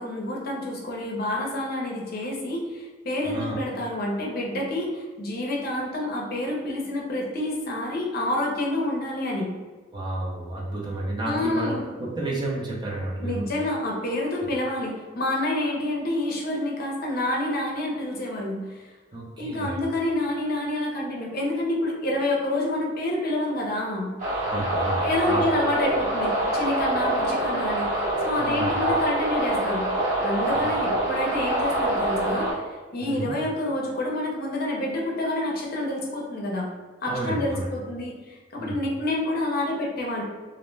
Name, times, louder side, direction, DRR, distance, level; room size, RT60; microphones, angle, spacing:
voice 1, 0.0-9.5 11.2-11.9 13.2-18.9 19.4-24.1 25.0-29.9 30.2-32.6 32.9-36.7 37.0-40.2, left 1 dB, 50° left, -1 dB, 0.5 m, -28 dB
voice 2, 3.2-3.6 9.9-13.5 19.1-19.8 24.4-25.4 28.3-28.7 30.5-30.7 33.0-33.3 37.1-37.7 38.6-38.8, right 1 dB, 25° right, -4 dB, 0.5 m, -31 dB
sound 1, 24.2-32.5, right 1 dB, 45° right, 1.0 m, -25 dB
2.5 x 2.0 x 3.1 m, 1.4 s
head